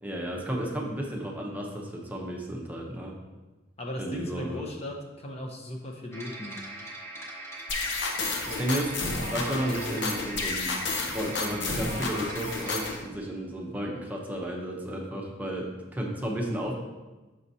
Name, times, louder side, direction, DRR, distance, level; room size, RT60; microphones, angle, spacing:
voice 1, 0.0-3.1 4.0-4.6 8.4-8.9 9.3-10.7 11.1-16.7, right 1 dB, 10° right, -2 dB, 0.7 m, -33 dB
voice 2, 3.8-6.6, left 1 dB, 35° left, 1 dB, 0.7 m, -37 dB
sound 1, 6.1-12.9, right 2 dB, 15° left, 1.1 m, -41 dB
sound 2, 7.7-13.0, left 3 dB, 70° left, 0.7 m, -31 dB
6.2 x 5.7 x 2.7 m, 1.2 s
head